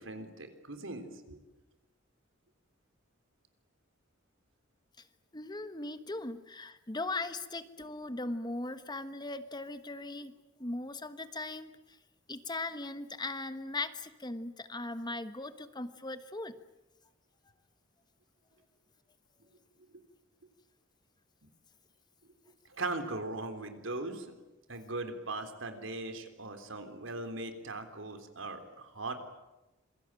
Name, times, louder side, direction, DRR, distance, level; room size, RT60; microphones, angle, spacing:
voice 1, 0.0-1.4 19.9-20.0 22.7-24.3 24.7-29.2, right 2 dB, 75° right, 7 dB, 3.7 m, -39 dB
voice 2, 5.3-10.3 10.6-11.7 12.3-16.5, left 2 dB, 20° left, 11 dB, 1.3 m, -39 dB
27.0 x 22.0 x 9.0 m, 0.99 s
head